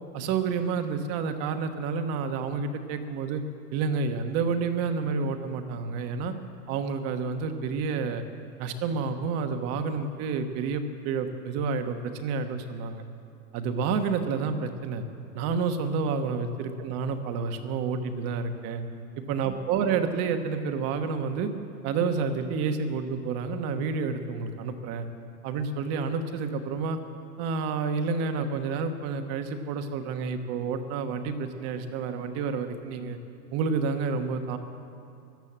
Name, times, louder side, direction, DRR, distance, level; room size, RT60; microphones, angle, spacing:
voice 1, 0.1-3.4 3.7-6.3 6.7-8.2 8.6-13.0 13.5-15.0 15.3-18.8 19.3-21.5 21.8-25.1 25.4-27.0 27.4-33.2 33.5-34.6, right 5 dB, 30° right, 7 dB, 1.2 m, -29 dB
16.5 x 12.0 x 7.4 m, 2.5 s
hypercardioid pair, 145°, 48 cm